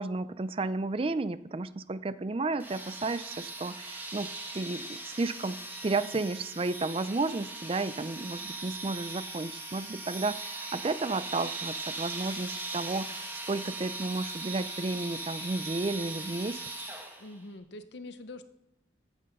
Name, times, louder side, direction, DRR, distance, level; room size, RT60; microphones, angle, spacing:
voice 1, 0.0-5.6 5.8-16.6, right 3 dB, 30° right, 15 dB, 0.4 m, -32 dB
sound 1, 2.6-17.4, right 2 dB, 10° right, 1.5 m, -39 dB
voice 2, 17.2-18.5, left 2 dB, 70° left, 11 dB, 0.8 m, -44 dB
14.0 x 7.7 x 5.3 m, 0.82 s
head